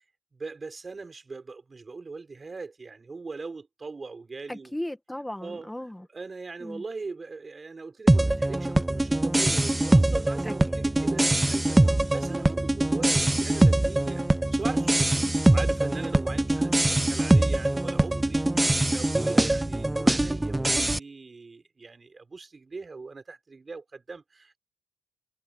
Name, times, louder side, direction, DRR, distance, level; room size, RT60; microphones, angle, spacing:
voice 1, 0.3-4.7 5.4-5.7 6.1-11.8 12.1-14.2 14.5-24.6, right 4 dB, 30° right, 5.6 m, -40 dB
voice 2, 4.5-6.1 6.6-6.8 10.4-10.5 11.8-12.1, left 1 dB, 5° left, 1.9 m, -37 dB
sound 1, 8.1-21.0, right 1 dB, 10° right, 0.9 m, -23 dB
cardioid pair, 90°, 0 cm